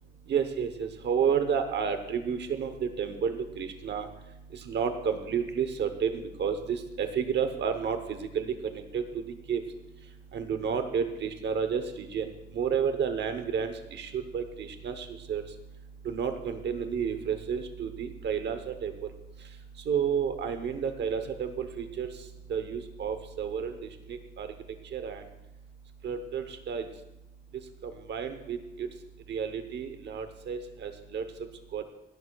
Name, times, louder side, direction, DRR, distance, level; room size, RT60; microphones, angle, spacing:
voice 1, 0.3-4.1 4.7-8.5 8.7-9.0 9.5-9.6 10.3-12.3 12.5-15.4 16.0-18.9 19.9-22.1 22.5-23.7 24.1-24.5 24.9-25.2 26.0-26.8 27.8-28.9 29.3-31.3 31.7-31.8, right 7 dB, 75° right, 8 dB, 0.9 m, -31 dB
28.5 x 11.0 x 2.3 m, 0.94 s
wide cardioid pair, 170°, 18 cm